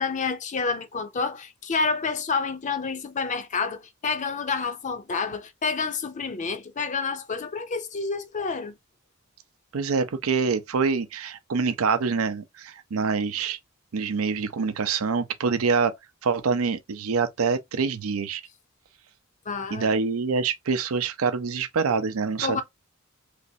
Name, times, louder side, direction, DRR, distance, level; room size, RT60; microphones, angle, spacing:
voice 1, 0.0-8.7 19.5-19.9 22.4-22.6, left 4 dB, 35° left, 0.5 m, -29 dB
voice 2, 9.7-13.6 13.9-15.9 16.2-18.4 19.7-22.6, right 5 dB, 80° right, 0.5 m, -25 dB
3.3 x 3.0 x 2.7 m
head